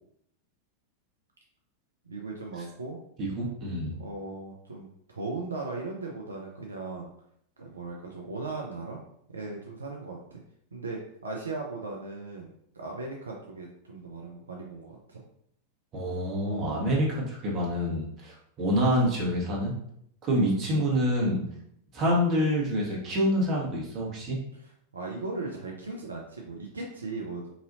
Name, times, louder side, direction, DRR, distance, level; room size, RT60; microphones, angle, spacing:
voice 1, 2.1-3.0 4.0-7.1 7.6-9.0 9.3-10.4 10.7-15.2 20.7-20.9 24.5-27.4, right 3 dB, 75° right, -1 dB, 0.5 m, -38 dB
voice 2, 3.2-4.0 15.9-19.7 20.2-21.4 21.9-24.4, equal, 30° right, -3 dB, 1.2 m, -27 dB
4.0 x 2.7 x 2.6 m, 0.70 s
figure-of-eight pair, 90°, 0 cm